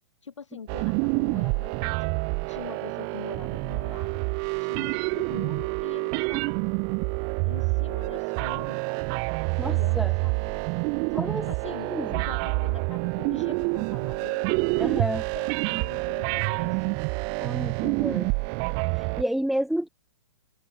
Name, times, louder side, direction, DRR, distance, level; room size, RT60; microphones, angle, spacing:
voice 1, 0.2-2.1 2.5-4.2 4.6-6.6 7.4-8.8 9.6-10.6 11.1-17.0, left 6 dB, 75° left, 7.7 m, -43 dB
sound 1, 0.7-19.2, right 40 dB or more, 35° right, 1.6 m, -27 dB
voice 2, 9.6-10.1 11.2-12.2 14.8-15.2 17.4-18.3 19.0-19.9, right 1 dB, ahead, 7.4 m, -30 dB
hypercardioid pair, 125°, 15 cm